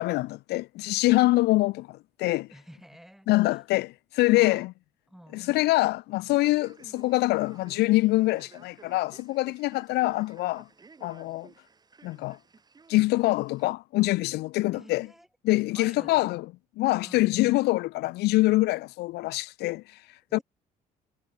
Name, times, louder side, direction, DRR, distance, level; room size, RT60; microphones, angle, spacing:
voice 1, 0.0-2.5 3.3-4.7 5.3-10.7 11.0-11.5 12.0-12.4 12.9-15.1 15.4-16.4 16.8-20.0 20.3-20.4, left 19 dB, 80° left, 0.5 m, -25 dB
voice 2, 2.5-3.6 4.3-4.7 5.1-5.4 14.7-15.3 15.7-16.3 17.0-17.3 20.3-20.4, equal, ahead, 7.7 m, -49 dB
Male speech man speaking, 6.3-13.6, right 4 dB, 25° right, 2.0 m, -55 dB
cardioid pair, 110°, 17 cm